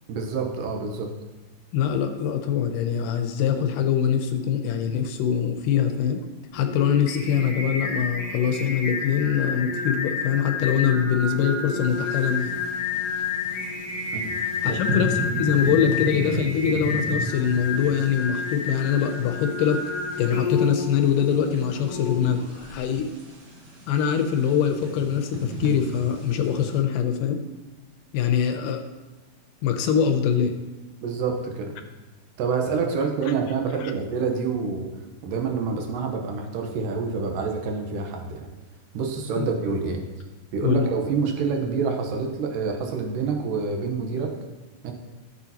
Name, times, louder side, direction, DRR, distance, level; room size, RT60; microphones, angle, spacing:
voice 1, 0.1-1.1 14.1-14.4 14.6-14.8 31.0-31.7 32.4-34.9 35.2-38.5 38.9-40.0 40.5-44.3 44.8-44.9, right 5 dB, 80° right, 3 dB, 2.6 m, -27 dB
voice 2, 1.7-6.2 6.5-12.5 14.6-19.9 20.2-22.4 22.7-23.1 23.9-27.4 28.1-28.8 29.6-30.5 39.4-39.5 40.6-40.9, left 8 dB, 80° left, 6 dB, 2.2 m, -23 dB
Singing, 6.5-22.8, left 5 dB, 55° left, 2.1 m, -30 dB
sound 1, 11.9-26.8, right 1 dB, 50° right, 1.2 m, -36 dB
14.0 x 7.0 x 2.9 m, 1.2 s
omnidirectional pair, 3.9 m